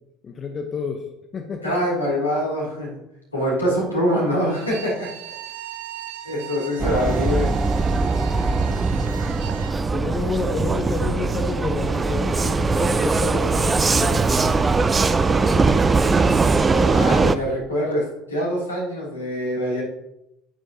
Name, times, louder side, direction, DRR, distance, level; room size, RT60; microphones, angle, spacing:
voice 1, 0.2-1.1 1.3-1.7 9.9-14.9 15.5-16.4, left 5 dB, 30° left, 4 dB, 1.0 m, -30 dB
voice 2, 1.6-3.0 3.3-5.1 6.2-7.5 16.9-18.0 18.3-19.8, equal, 85° left, -6 dB, 3.0 m, -24 dB
Bowed string instrument, 4.4-9.8, right 10 dB, 60° right, 0.6 m, -38 dB
Vehicle, 6.8-17.4, right 4 dB, 20° right, 0.4 m, -20 dB
8.9 x 8.9 x 2.9 m, 0.86 s
figure-of-eight pair, 65°, 0 cm